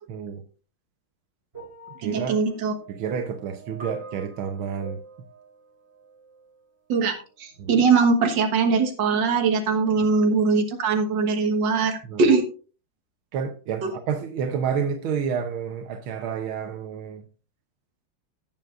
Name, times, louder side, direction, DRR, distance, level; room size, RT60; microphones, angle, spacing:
voice 1, 0.1-0.4 2.0-2.4 2.9-5.0 7.6-7.8 12.0-12.3 13.3-17.2, right 7 dB, 80° right, 1.7 m, -30 dB
sound 1, 1.5-6.7 7.6-7.7, right 3 dB, 30° right, 4.2 m, -44 dB
voice 2, 2.0-2.7 6.9-12.4 13.8-13.9, right 4 dB, 60° right, 2.0 m, -21 dB
16.5 x 7.3 x 2.5 m
omnidirectional pair, 2.2 m